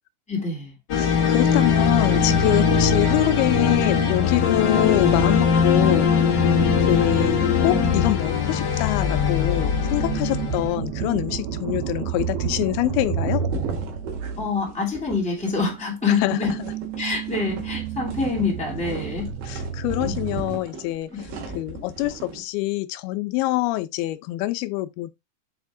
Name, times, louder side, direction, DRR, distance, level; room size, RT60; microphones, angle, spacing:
voice 1, 0.3-0.7 6.8-7.0 11.9-12.0 14.4-16.5 17.0-19.3 20.0-20.2 21.1-21.2, left 4 dB, ahead, 2.2 m, -26 dB
sound 1, 0.9-10.8, left 6 dB, 50° left, 1.3 m, -21 dB
voice 2, 1.0-6.1 6.9-13.5 16.2-16.4 19.5-21.1 21.6-25.1, left 17 dB, 85° left, 2.5 m, -25 dB
sound 2, 4.4-15.1 15.4-20.6, right 8 dB, 65° right, 1.6 m, -32 dB
sound 3, 13.5-22.4, right 2 dB, 85° right, 4.0 m, -37 dB
7.4 x 4.3 x 3.6 m
omnidirectional pair, 4.4 m